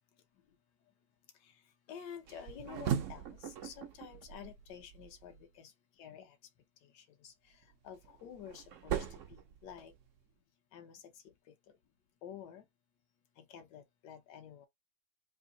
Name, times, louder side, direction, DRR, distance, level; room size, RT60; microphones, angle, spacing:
voice 1, 1.9-5.7 6.0-6.4 6.8-9.9 10.7-11.7 12.2-12.6 13.4-14.7, left 8 dB, 70° left, 1.4 m, -51 dB
sound 1, 2.3-5.4 7.6-10.2, right 9 dB, 70° right, 0.7 m, -40 dB
3.5 x 2.7 x 3.8 m
omnidirectional pair, 1.9 m